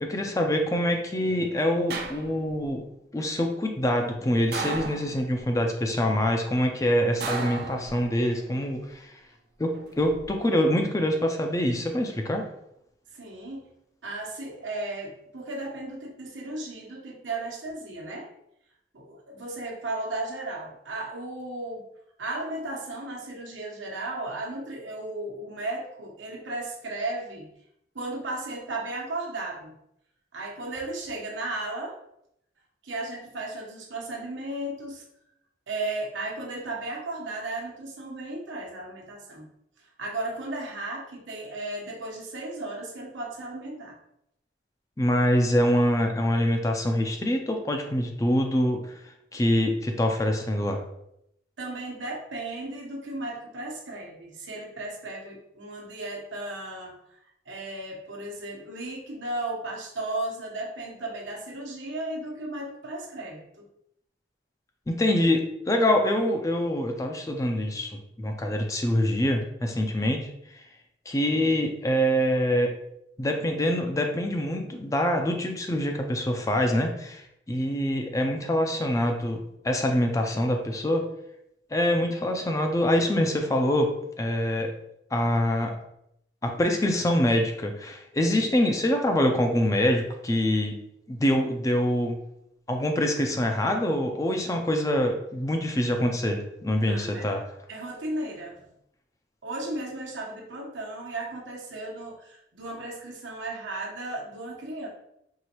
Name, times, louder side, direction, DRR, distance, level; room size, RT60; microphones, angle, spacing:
voice 1, 0.0-2.8 3.1-9.1 9.6-12.5 45.0-48.9 49.3-50.8 64.9-70.3 71.1-72.8 73.2-81.0 81.7-83.9 84.2-84.7 85.1-85.7 86.4-90.8 91.1-92.2 92.7-97.4, left 1 dB, 20° left, 4 dB, 0.4 m, -25 dB
sound 1, 1.9-2.7 4.5-5.5 7.2-8.3 9.7-10.3, right 4 dB, 55° right, 0.4 m, -34 dB
voice 2, 13.1-13.6 14.0-18.3 18.9-21.8 22.2-27.5 27.9-29.8 30.3-32.0 32.8-35.0 35.7-39.5 40.0-44.0 51.6-56.9 57.5-63.5 96.8-97.3 97.7-98.6 99.4-104.9, right 2 dB, 90° right, -1 dB, 1.0 m, -35 dB
4.7 x 3.1 x 3.0 m, 0.77 s
head